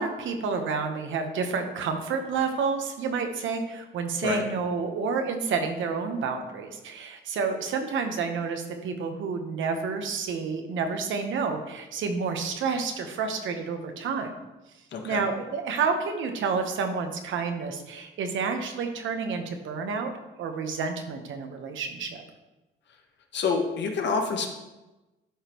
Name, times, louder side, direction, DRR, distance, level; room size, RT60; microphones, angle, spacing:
voice 1, 0.0-14.4 15.0-20.1 20.4-22.2, right 5 dB, 75° right, 5 dB, 1.0 m, -29 dB
voice 2, 14.9-15.2 23.3-24.5, left 5 dB, 65° left, 3 dB, 1.2 m, -27 dB
11.5 x 5.1 x 3.0 m, 1.0 s
cardioid pair, 90°, 20 cm